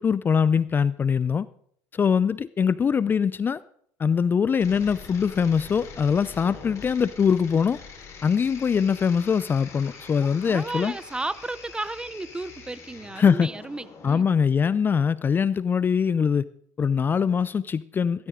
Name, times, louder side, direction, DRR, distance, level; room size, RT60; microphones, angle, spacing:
voice 1, 0.0-1.5 1.9-3.6 4.0-7.8 8.2-10.9 13.2-13.5 14.0-16.5 16.8-18.3, left 6 dB, 25° left, 0.4 m, -22 dB
sound 1, 4.6-14.1, left 5 dB, 45° left, 4.4 m, -44 dB
voice 2, 10.2-14.3, right 2 dB, 10° right, 0.7 m, -34 dB
17.0 x 13.0 x 3.8 m
hypercardioid pair, 80°, 7 cm